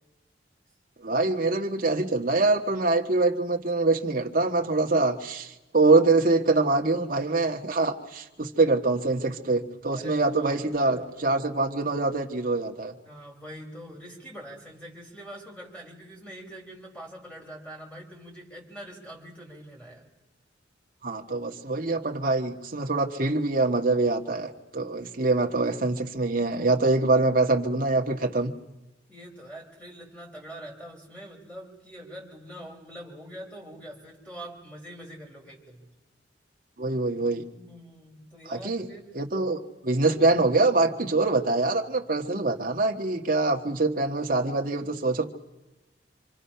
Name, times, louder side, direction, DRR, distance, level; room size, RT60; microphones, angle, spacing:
voice 1, 1.0-12.9 21.0-28.5 36.8-37.4 38.5-38.8 39.2-39.6 39.8-45.2, right 3 dB, 50° right, 3 dB, 1.5 m, -24 dB
voice 2, 9.9-10.9 13.0-20.1 29.1-35.9 37.5-39.2, equal, 5° left, 0 dB, 4.1 m, -44 dB
26.5 x 25.5 x 5.7 m, 1.0 s
head